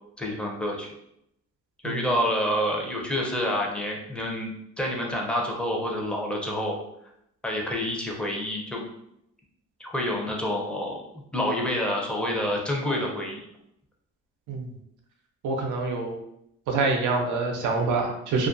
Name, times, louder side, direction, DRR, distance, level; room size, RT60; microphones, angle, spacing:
voice 1, 0.2-0.9 1.8-4.5 4.8-6.8 7.4-8.8 9.8-11.0 11.3-13.4, left 1 dB, 5° left, -1 dB, 0.5 m, -28 dB
voice 2, 15.4-16.2 16.7-18.5, right 3 dB, 85° right, 2 dB, 0.6 m, -26 dB
2.4 x 2.1 x 2.5 m, 0.78 s
cardioid pair, 90°, 30 cm